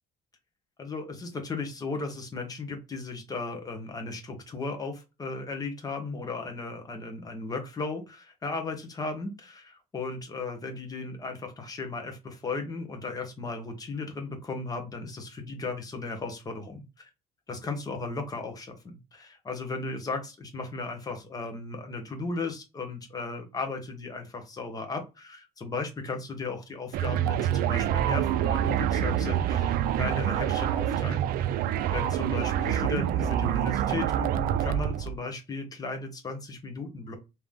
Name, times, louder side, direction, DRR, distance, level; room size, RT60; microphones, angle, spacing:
voice 1, 0.8-17.1 17.5-31.7 31.9-37.1, left 3 dB, 25° left, 5 dB, 1.0 m, -36 dB
sound 1, 26.9-35.2, right 10 dB, 70° right, 0.4 m, -26 dB
3.3 x 2.8 x 3.6 m, 0.26 s
cardioid pair, 160°, 15 cm